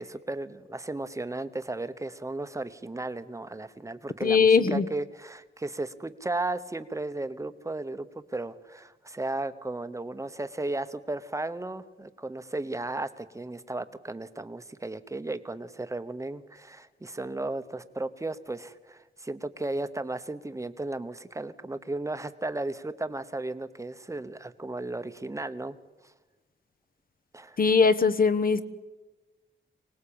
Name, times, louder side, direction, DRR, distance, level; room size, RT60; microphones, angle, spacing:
voice 1, 0.0-25.8 26.0-26.1 27.3-27.6, right 2 dB, 15° right, 11 dB, 1.0 m, -35 dB
voice 2, 4.2-4.8 27.6-28.6, left 5 dB, 45° left, 12 dB, 1.1 m, -20 dB
25.5 x 19.0 x 8.8 m, 1.2 s
wide cardioid pair, 170°, 21 cm